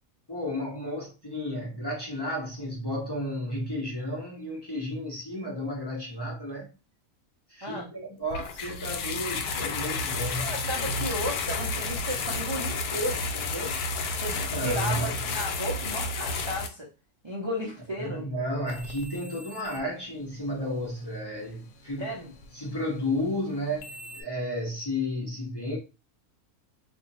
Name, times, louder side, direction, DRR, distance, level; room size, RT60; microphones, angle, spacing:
voice 1, 0.3-6.7 7.5-10.9 14.3-15.1 18.0-22.1 22.5-25.8, left 1 dB, 25° left, 0.6 m, -33 dB
sound 1, 8.3-16.7, left 3 dB, 80° left, 1.1 m, -31 dB
voice 2, 10.4-13.7 14.2-16.9 17.2-18.3 22.0-22.3, equal, 45° right, 0.3 m, -34 dB
sound 2, 18.7-24.2, left 1 dB, 65° left, 0.8 m, -48 dB
2.6 x 2.5 x 4.0 m
omnidirectional pair, 1.6 m